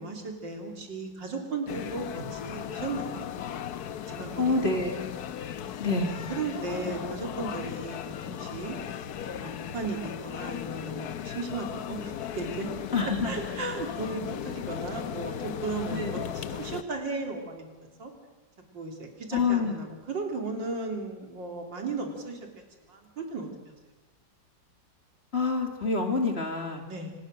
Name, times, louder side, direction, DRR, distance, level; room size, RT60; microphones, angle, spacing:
voice 1, 0.0-3.3 4.1-4.8 6.3-8.8 9.3-12.7 13.0-18.1 18.7-22.4 22.9-23.7 26.9-27.1, right 3 dB, 85° right, 3 dB, 3.8 m, -36 dB
sound 1, 1.7-16.8, left 9 dB, 65° left, 1.3 m, -37 dB
voice 2, 4.4-5.0 5.8-6.2 6.8-6.9 12.9-13.3 15.9-16.2 19.3-19.7 25.3-26.8, left 4 dB, 35° left, 4 dB, 2.7 m, -27 dB
25.5 x 19.5 x 6.5 m, 1.2 s
omnidirectional pair, 1.9 m